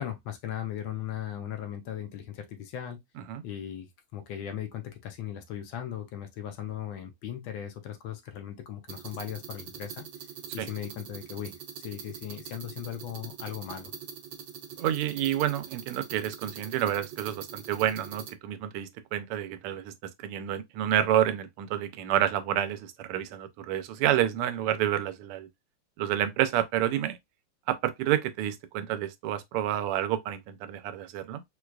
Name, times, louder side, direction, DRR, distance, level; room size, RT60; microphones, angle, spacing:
voice 1, 0.0-3.0 3.4-10.1 10.5-13.9, left 10 dB, 75° left, 1.3 m, -38 dB
sound 1, 8.9-18.3, right 8 dB, 70° right, 1.3 m, -43 dB
voice 2, 14.8-19.9 20.2-25.5 26.0-27.2 27.7-31.4, right 11 dB, 85° right, 1.5 m, -29 dB
4.5 x 2.3 x 2.2 m
omnidirectional pair, 2.4 m